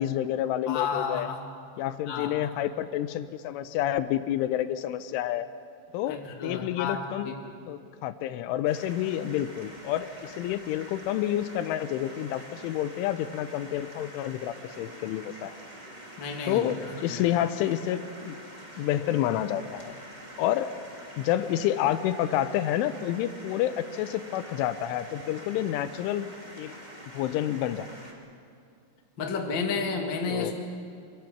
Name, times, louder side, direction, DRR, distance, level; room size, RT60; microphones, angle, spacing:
voice 1, 0.0-1.3 1.8-5.5 5.9-7.3 7.7-15.5 16.5-18.4 18.8-19.9 20.4-20.7 21.2-26.3 26.6-26.8 27.1-27.9 30.3-30.5, left 12 dB, 85° left, 11 dB, 3.2 m, -29 dB
voice 2, 0.7-1.4 2.1-2.5 6.1-7.3 16.2-16.7 17.0-17.2 29.2-30.5, left 5 dB, 45° left, 1 dB, 1.5 m, -31 dB
sound 1, 8.6-28.1, right 1 dB, 40° right, 0.6 m, -46 dB
26.0 x 22.0 x 5.9 m, 2.4 s
omnidirectional pair, 5.5 m